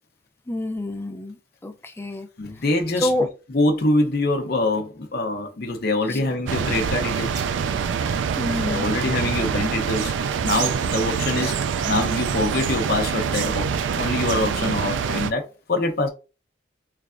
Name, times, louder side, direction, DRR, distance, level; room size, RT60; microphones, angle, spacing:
voice 1, 0.5-1.4 1.6-2.3 3.0-3.3 6.1-6.2 8.4-8.9, left 1 dB, 10° left, 0.4 m, -27 dB
voice 2, 2.4-3.1 3.5-7.4 8.6-10.1 10.4-11.5 11.9-13.7 14.0-16.1, left 2 dB, 55° left, 0.7 m, -24 dB
sound 1, 6.5-15.3, right 6 dB, 75° right, 0.3 m, -25 dB
3.4 x 3.2 x 2.5 m
head